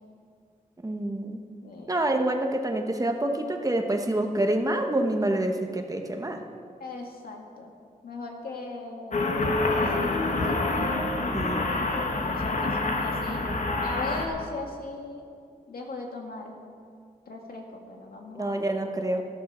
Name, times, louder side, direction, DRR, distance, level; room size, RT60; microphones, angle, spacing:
voice 1, 0.8-1.4 1.9-6.4 11.3-11.7 18.3-19.2, right 1 dB, 25° right, 4 dB, 1.0 m, -27 dB
voice 2, 1.6-1.9 6.8-7.7 8.0-10.7 12.1-13.5 13.8-15.3 15.7-16.6 17.3-18.7, left 3 dB, 80° left, 1 dB, 2.1 m, -39 dB
sound 1, 9.1-14.2, left 2 dB, 55° left, 1.5 m, -27 dB
14.0 x 13.5 x 4.3 m, 2.2 s
wide cardioid pair, 110°, 15 cm